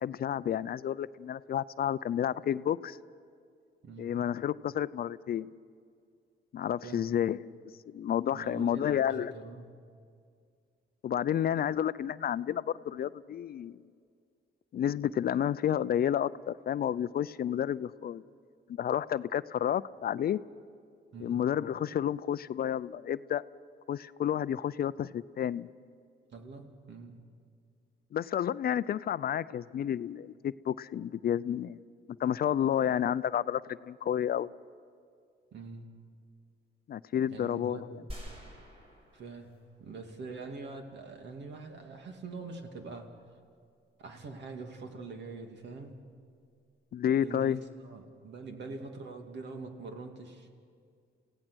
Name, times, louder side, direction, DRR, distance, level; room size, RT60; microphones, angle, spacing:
voice 1, 0.0-3.0 4.0-5.5 6.5-7.5 7.9-9.3 11.0-13.8 14.7-18.2 18.7-20.4 21.2-23.4 23.9-25.7 28.1-31.8 32.2-34.5 36.9-38.0 46.9-47.6, left 10 dB, 50° left, 16 dB, 0.5 m, -30 dB
voice 2, 8.3-9.7 21.1-21.4 26.3-27.2 35.5-35.9 37.3-38.1 39.1-39.5 39.8-43.1 44.0-46.0 47.2-50.5, right 3 dB, 60° right, 4 dB, 2.4 m, -44 dB
sound 1, 38.1-40.0 40.4-40.5, equal, 30° right, 5.3 m, -47 dB
28.0 x 16.5 x 6.2 m, 2.2 s
cardioid pair, 90°, 20 cm